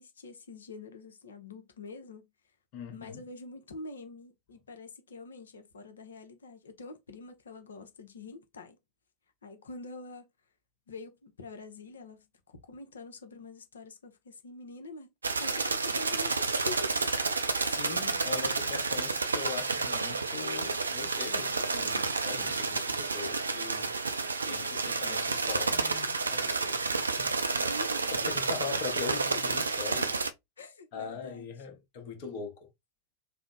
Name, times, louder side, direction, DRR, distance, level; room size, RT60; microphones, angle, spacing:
voice 1, 0.0-2.3 2.9-8.8 9.4-10.3 10.9-15.1 15.4-17.2 24.4-24.7 27.5-28.3 29.5-29.6 30.6-31.5, left 3 dB, 70° left, 0.7 m, -45 dB
voice 2, 2.7-3.2 17.6-23.9 24.5-27.7 28.1-30.2 30.9-32.7, left 6 dB, 45° left, 0.9 m, -41 dB
sound 1, 15.2-30.3, right 4 dB, 75° right, 0.4 m, -30 dB
3.3 x 2.0 x 3.8 m
figure-of-eight pair, 90°, 0 cm